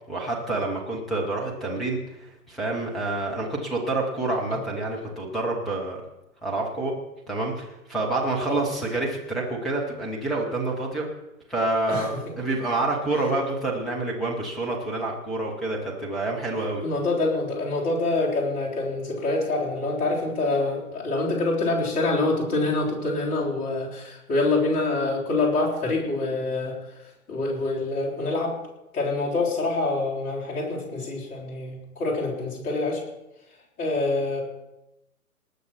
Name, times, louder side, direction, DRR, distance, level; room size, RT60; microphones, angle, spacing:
voice 1, 0.1-6.0 6.4-6.9 7.3-11.1 11.5-16.8, right 2 dB, ahead, -2 dB, 0.5 m, -28 dB
voice 2, 11.9-12.2 16.8-26.8 27.3-28.5 28.9-33.0 33.8-34.4, left 2 dB, 20° left, -5 dB, 3.7 m, -26 dB
19.5 x 6.6 x 5.9 m, 0.93 s
figure-of-eight pair, 125°, 45 cm